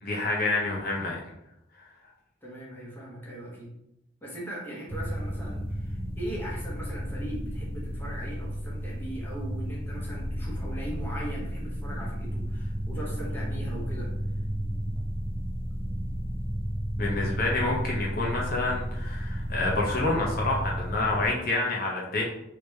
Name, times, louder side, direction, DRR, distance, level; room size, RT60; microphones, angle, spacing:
voice 1, 0.0-1.2 1.8-1.9 17.0-22.2, left 2 dB, 50° left, -3 dB, 0.8 m, -28 dB
voice 2, 2.4-3.7 4.2-14.1, right 1 dB, 10° left, -4 dB, 0.9 m, -39 dB
sound 1, 4.9-21.3, equal, 30° right, 0.5 m, -33 dB
3.2 x 2.8 x 3.3 m, 0.83 s
head